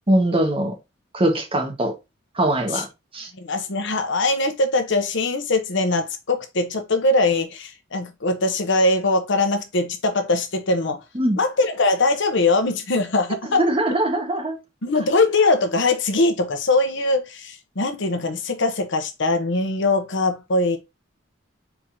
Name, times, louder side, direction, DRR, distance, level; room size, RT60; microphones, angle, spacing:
voice 1, 0.1-0.8 1.1-1.9 2.4-2.9 3.1-3.3 11.1-11.4 13.6-14.6, right 1 dB, 30° right, 1.3 m, -21 dB
voice 2, 3.4-11.0 11.3-13.6 14.8-20.8, left 2 dB, 65° left, 1.0 m, -21 dB
4.5 x 3.9 x 2.7 m
head